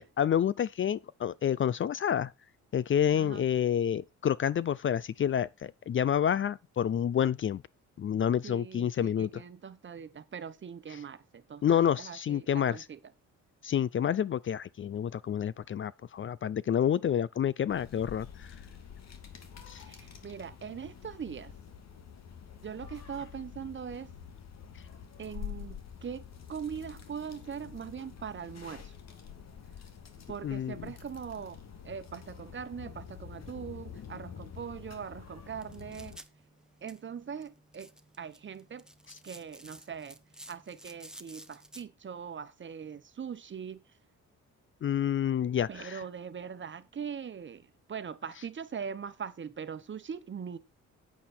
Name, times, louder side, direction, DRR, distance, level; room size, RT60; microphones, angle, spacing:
voice 1, 0.0-2.3 2.7-7.6 8.0-9.4 11.6-12.8 13.6-18.5 19.7-19.8 30.4-30.9 44.8-46.0, left 9 dB, 40° left, 0.5 m, -29 dB
voice 2, 3.1-3.5 8.4-13.0 19.7-21.5 22.6-24.1 25.2-28.9 30.3-31.6 31.8-36.2 36.8-37.9 38.2-38.9 39.2-40.2 40.5-43.8 45.7-50.6, right 7 dB, 40° right, 1.2 m, -41 dB
sound 1, 17.7-36.2, left 8 dB, 60° left, 2.4 m, -47 dB
sound 2, 35.4-41.8, right 1 dB, ahead, 1.0 m, -53 dB
9.3 x 8.5 x 4.4 m
cardioid pair, 90°, 30 cm